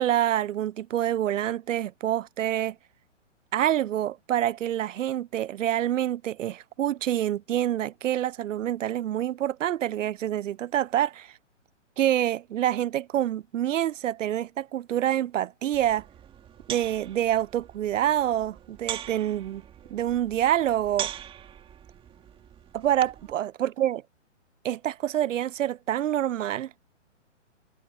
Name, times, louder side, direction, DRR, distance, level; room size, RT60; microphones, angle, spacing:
voice 1, 0.0-2.8 3.5-11.3 12.0-16.1 16.7-19.6 19.9-21.1 22.7-24.0 24.6-26.7, right 11 dB, 85° right, 0.5 m, -27 dB
sound 1, 15.7-23.3, right 10 dB, 15° right, 2.6 m, -41 dB
hypercardioid pair, 140°, 37 cm